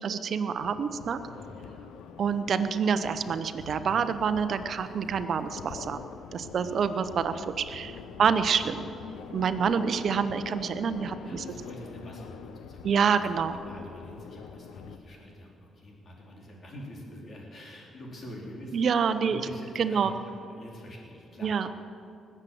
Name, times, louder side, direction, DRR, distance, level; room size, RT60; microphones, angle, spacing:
voice 1, 0.0-1.2 2.2-6.0 6.3-8.8 9.3-11.4 12.8-13.6 18.7-19.4 19.8-20.1 21.4-21.8, right 6 dB, 55° right, 11 dB, 0.9 m, -27 dB
sound 1, 0.6-15.0, left 7 dB, 85° left, 0.8 m, -45 dB
voice 2, 1.4-1.7 6.6-6.7 7.6-8.4 11.2-13.1 13.4-21.6, equal, 45° left, -2 dB, 4.2 m, -46 dB
19.5 x 7.7 x 7.8 m, 2.7 s
cardioid pair, 90°, 0 cm